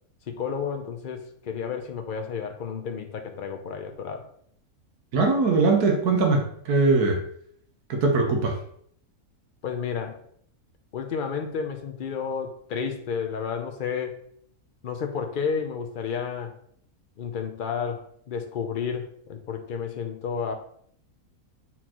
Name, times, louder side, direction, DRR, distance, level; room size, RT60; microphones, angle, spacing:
voice 1, 0.3-4.3 9.6-10.2 10.9-14.2 14.8-16.5 17.2-20.5, left 6 dB, 50° left, 5 dB, 0.6 m, -31 dB
voice 2, 5.1-7.2 7.9-8.6, right 3 dB, 90° right, 2 dB, 1.6 m, -21 dB
7.4 x 4.4 x 3.0 m, 0.65 s
omnidirectional pair, 1.6 m